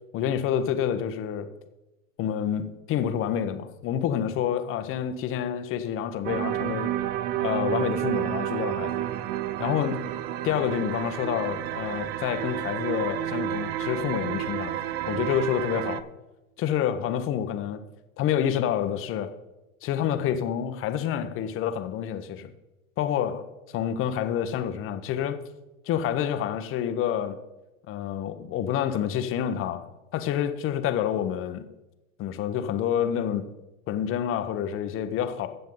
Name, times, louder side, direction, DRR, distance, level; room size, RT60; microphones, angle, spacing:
voice 1, 0.1-1.5 2.2-6.9 7.4-9.0 9.6-10.1 10.4-14.8 15.1-16.1 16.6-17.8 18.2-19.3 19.8-22.5 23.0-23.5 23.7-25.4 25.9-27.4 27.9-29.9 30.1-31.7 32.2-33.5 33.9-35.5, left 9 dB, 30° left, 1.0 m, -28 dB
sound 1, 6.2-16.0, right 12 dB, 25° right, 0.4 m, -30 dB
15.5 x 6.8 x 3.9 m
hypercardioid pair, 115°, 40 cm